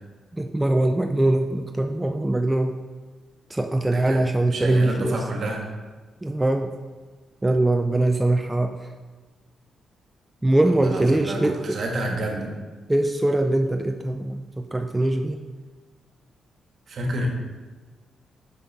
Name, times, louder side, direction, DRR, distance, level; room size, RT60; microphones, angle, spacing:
voice 1, 0.3-2.7 3.5-5.2 6.2-6.7 7.4-8.9 10.4-11.8 12.9-15.4, right 1 dB, 15° right, 5 dB, 0.4 m, -22 dB
voice 2, 3.9-4.2 4.4-5.6 10.6-12.5 16.9-17.3, right 1 dB, 60° right, 1 dB, 1.4 m, -29 dB
5.5 x 5.4 x 4.1 m, 1.3 s
cardioid pair, 70°, 0 cm